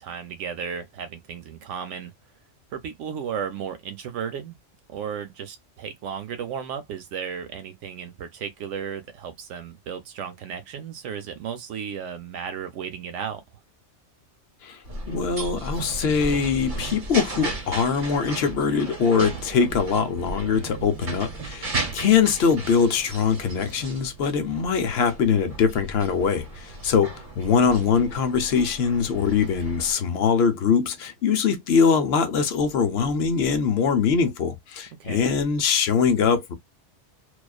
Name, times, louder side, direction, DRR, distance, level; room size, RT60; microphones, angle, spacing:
voice 1, 0.0-2.1 2.7-4.6 4.9-13.4 27.6-28.0 35.0-35.3, right 7 dB, 80° right, 0.9 m, -34 dB
sound 1, 14.8-29.9, right 2 dB, 45° right, 1.0 m, -35 dB
voice 2, 15.1-36.5, left 6 dB, 65° left, 0.8 m, -22 dB
2.4 x 2.3 x 2.3 m
omnidirectional pair, 1.2 m